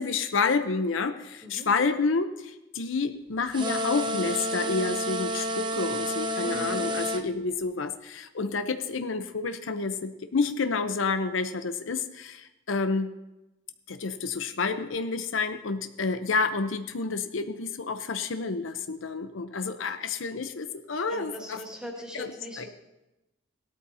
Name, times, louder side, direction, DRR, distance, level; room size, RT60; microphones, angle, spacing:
voice 1, 0.0-13.1 13.9-21.6 22.1-22.3 22.6-22.7, left 4 dB, 80° left, 9 dB, 0.7 m, -29 dB
sound 1, 3.5-7.2, equal, 25° right, 0.7 m, -30 dB
voice 2, 6.4-6.8 21.1-22.7, equal, 5° right, -1 dB, 2.3 m, -40 dB
18.0 x 12.5 x 2.8 m, 0.98 s
head